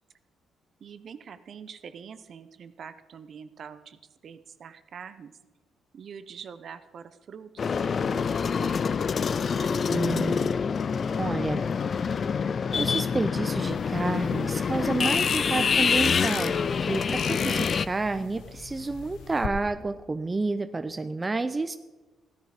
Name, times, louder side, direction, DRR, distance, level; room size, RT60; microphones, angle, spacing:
voice 1, 0.8-5.4 5.9-8.8 9.6-9.9, right 7 dB, 55° right, 12 dB, 0.8 m, -45 dB
sound 1, 7.6-17.9, left 6 dB, 45° left, 0.4 m, -26 dB
voice 2, 9.9-10.5 11.2-12.2 12.7-21.8, right 3 dB, 25° right, 11 dB, 0.5 m, -30 dB
sound 2, 13.6-19.5, left 8 dB, 75° left, 1.0 m, -41 dB
15.0 x 10.5 x 5.0 m, 1.2 s
cardioid pair, 90°, 0 cm